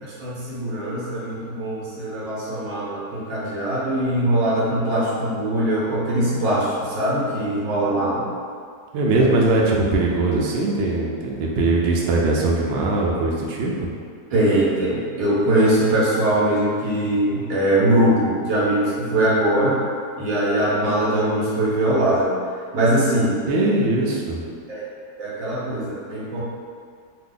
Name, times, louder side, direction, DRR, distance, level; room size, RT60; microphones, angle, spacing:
voice 1, 0.0-8.2 14.3-19.8 20.2-22.3 22.7-23.4 24.7-24.8 25.2-26.4, right 1 dB, 65° right, -7 dB, 1.1 m, -21 dB
voice 2, 8.9-13.9 23.5-24.4, right 2 dB, 90° right, -2 dB, 0.6 m, -21 dB
2.8 x 2.1 x 3.7 m, 2.2 s
omnidirectional pair, 1.7 m